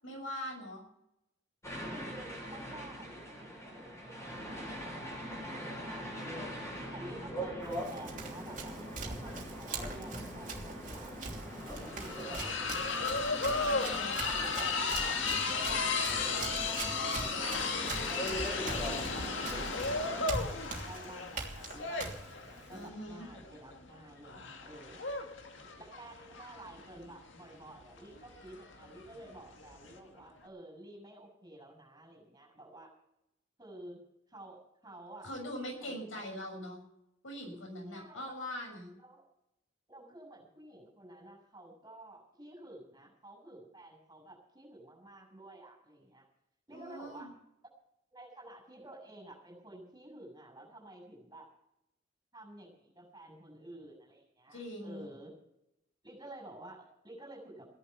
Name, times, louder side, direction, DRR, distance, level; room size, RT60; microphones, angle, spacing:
voice 1, 0.0-0.8 13.6-14.2 22.7-23.3 35.2-36.8 37.2-38.9 46.7-47.3 54.5-55.1, equal, 90° left, 1 dB, 6.6 m, -42 dB
sound 1, 1.6-20.2, equal, 15° left, 7.5 m, -42 dB
voice 2, 1.8-6.6 6.9-13.7 14.2-25.2 25.6-32.9 33.6-34.0 34.3-35.3 35.8-36.2 37.9-38.4 39.0-39.3 39.9-46.3 46.7-47.3 48.1-51.5 52.3-55.3 56.0-57.7, right 1 dB, 20° right, 0 dB, 7.1 m, -51 dB
Run, 7.6-22.9, right 3 dB, 45° right, 3.2 m, -43 dB
sound 2, 10.8-10.9 11.1-30.0, left 4 dB, 75° left, 1.9 m, -35 dB
16.5 x 11.5 x 7.0 m, 0.82 s
head